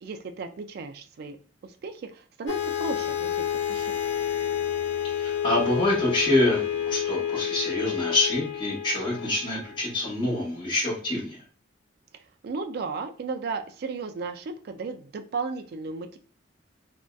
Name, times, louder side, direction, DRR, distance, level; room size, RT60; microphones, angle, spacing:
voice 1, 0.0-1.4 1.6-3.9 12.4-16.2, right 4 dB, 55° right, 6 dB, 0.3 m, -35 dB
sound 1, 2.5-10.2, left 9 dB, 75° left, 0.4 m, -29 dB
voice 2, 5.2-11.4, left 1 dB, 25° left, -5 dB, 1.0 m, -26 dB
2.6 x 2.1 x 2.2 m, 0.40 s
head